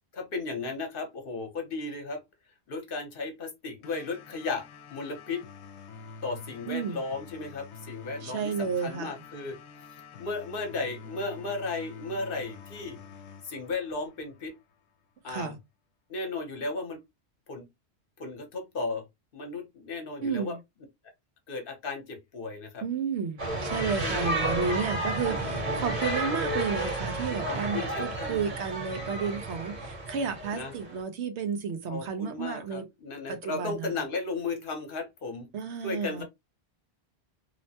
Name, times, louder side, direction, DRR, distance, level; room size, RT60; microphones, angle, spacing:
voice 1, 0.1-2.2 2.7-5.4 6.2-9.6 10.2-13.0 13.4-14.5 15.2-15.5 16.1-17.0 17.5-17.6 18.2-19.0 19.3-20.6 21.5-22.8 24.0-24.3 25.3-26.0 27.4-28.4 30.5-30.7 31.9-35.5 35.8-36.2, left 3 dB, 55° left, 1.0 m, -35 dB
sound 1, 3.8-14.8, left 5 dB, 80° left, 0.9 m, -47 dB
voice 2, 6.6-7.0 8.2-9.1 15.3-15.6 20.2-20.6 22.8-32.9 33.3-33.9 35.5-36.2, right 6 dB, 85° right, 1.0 m, -32 dB
sound 2, 23.4-31.0, right 1 dB, 35° right, 1.0 m, -32 dB
3.0 x 2.1 x 2.7 m
omnidirectional pair, 1.1 m